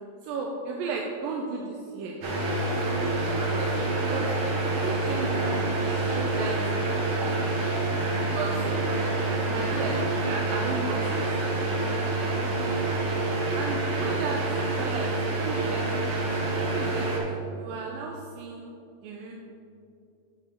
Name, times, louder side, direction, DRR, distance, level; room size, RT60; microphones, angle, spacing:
voice 1, 0.2-2.2 3.5-3.7 4.1-4.3 4.7-7.0 8.3-8.7 9.4-11.8 13.5-16.2 16.7-18.7 19.0-19.3, right 4 dB, 85° right, 0 dB, 2.4 m, -35 dB
sound 1, 2.2-17.2, right 2 dB, 55° right, 1.6 m, -27 dB
9.4 x 6.8 x 3.5 m, 2.6 s
omnidirectional pair, 4.0 m